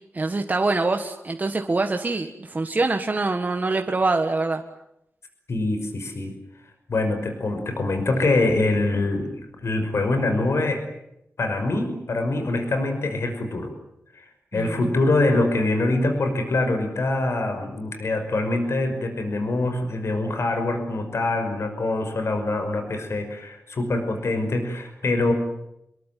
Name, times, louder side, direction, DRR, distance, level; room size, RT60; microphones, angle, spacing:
voice 1, 0.1-4.6 14.5-14.9, right 3 dB, 35° right, 5 dB, 1.6 m, -24 dB
voice 2, 5.5-6.3 6.9-10.8 11.4-13.7 14.2-14.3 14.5-25.3, left 2 dB, 70° left, 6 dB, 5.8 m, -24 dB
27.5 x 22.0 x 9.3 m, 0.80 s
wide cardioid pair, 125°, 5 cm